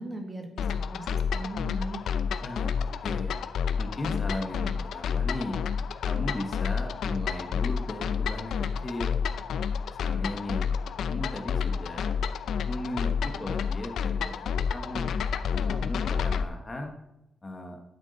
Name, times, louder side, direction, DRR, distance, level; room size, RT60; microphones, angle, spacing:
voice 1, 0.0-2.0, right 2 dB, 20° right, 3 dB, 1.7 m, -38 dB
sound 1, 0.6-16.4, left 6 dB, 90° left, 0.6 m, -29 dB
voice 2, 2.4-3.3 3.8-5.6 6.0-9.2 9.9-10.7 11.0-12.2 12.7-15.1 15.5-16.9 17.4-17.8, left 1 dB, 20° left, 3 dB, 1.3 m, -36 dB
12.0 x 9.5 x 4.1 m, 0.88 s
wide cardioid pair, 175°, 0 cm